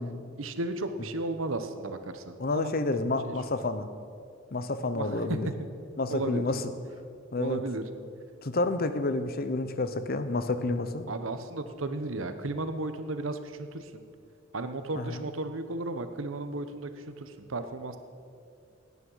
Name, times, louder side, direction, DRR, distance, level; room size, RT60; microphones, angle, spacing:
voice 1, 0.4-2.7 3.2-3.3 4.9-5.4 6.1-6.5 7.4-7.8 11.1-14.0 14.5-18.0, right 2 dB, 80° right, 9 dB, 1.0 m, -34 dB
voice 2, 2.4-3.9 4.5-5.5 6.0-6.7 7.3-7.6 8.4-11.0 14.9-15.3, left 2 dB, 50° left, 10 dB, 0.8 m, -29 dB
17.0 x 9.7 x 5.7 m, 2.3 s
head